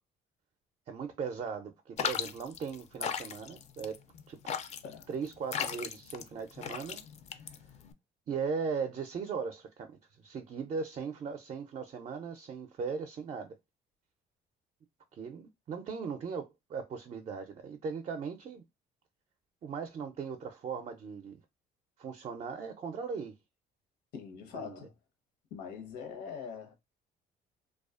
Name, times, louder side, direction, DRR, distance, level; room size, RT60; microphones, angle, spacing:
voice 1, 0.9-4.0 4.3-4.6 5.1-7.0 8.3-13.5 15.1-18.6 19.6-21.4 22.0-23.3 24.5-24.8, right 5 dB, 40° right, 0.4 m, -38 dB
sound 1, 2.0-7.9, left 7 dB, 40° left, 0.4 m, -37 dB
voice 2, 24.1-24.9 25.5-26.7, left 7 dB, 90° left, 0.8 m, -43 dB
2.4 x 2.3 x 2.4 m
cardioid pair, 110°, 17 cm